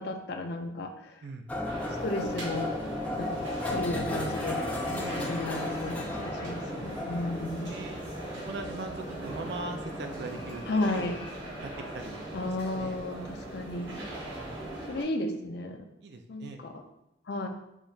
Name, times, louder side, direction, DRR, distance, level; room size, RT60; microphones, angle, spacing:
voice 1, 0.0-1.2 2.0-2.7 3.2-4.7 5.2-7.8 10.7-11.2 12.3-14.0 14.9-15.9 16.3-16.8 17.3-17.5, left 2 dB, 60° left, 5 dB, 0.5 m, -33 dB
sound 1, 1.5-14.8, left 2 dB, 10° left, 0.5 m, -37 dB
sound 2, 1.6-15.0, right 1 dB, 85° right, 1.3 m, -40 dB
sound 3, 4.0-13.0, left 1 dB, 25° left, 1.2 m, -47 dB
voice 2, 4.9-5.4 7.3-8.0 8.5-10.6 10.9-11.1 11.6-13.0 14.4-14.7 16.0-16.6, right 3 dB, 60° right, 5 dB, 0.5 m, -41 dB
5.0 x 2.8 x 2.7 m, 0.87 s
head